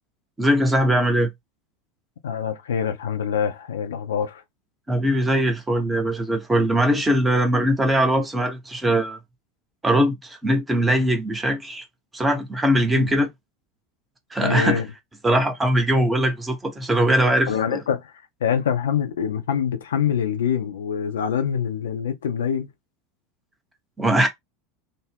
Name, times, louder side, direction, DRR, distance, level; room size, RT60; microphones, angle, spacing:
voice 1, 0.4-1.3 4.9-9.2 9.8-11.8 12.1-13.3 14.3-14.8 15.2-17.8 24.0-24.3, right 1 dB, 15° right, 0.8 m, -21 dB
voice 2, 2.2-4.4 12.9-13.1 14.4-14.9 17.5-18.1 18.4-22.7, left 8 dB, 70° left, 0.5 m, -25 dB
2.5 x 2.0 x 3.4 m
figure-of-eight pair, 75°, 0 cm